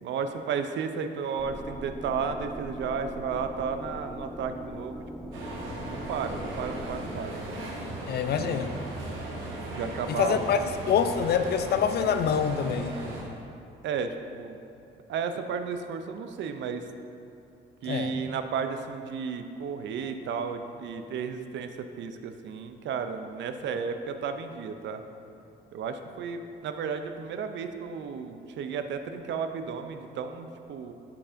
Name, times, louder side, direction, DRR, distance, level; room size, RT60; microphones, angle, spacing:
voice 1, 0.0-5.3 5.8-7.4 8.3-8.6 9.7-10.5 13.8-14.6 15.1-16.8 17.8-25.0 25.7-30.9, right 6 dB, 65° right, 8 dB, 0.4 m, -33 dB
sound 1, 1.4-7.0, equal, 5° left, 0.5 m, -40 dB
sound 2, 5.3-13.2, right 1 dB, 90° right, 1.0 m, -37 dB
voice 2, 8.1-8.7 10.1-10.6 10.9-12.9 17.9-18.2, left 7 dB, 55° left, 9 dB, 0.4 m, -26 dB
8.4 x 4.8 x 2.5 m, 2.6 s
cardioid pair, 90°, 20 cm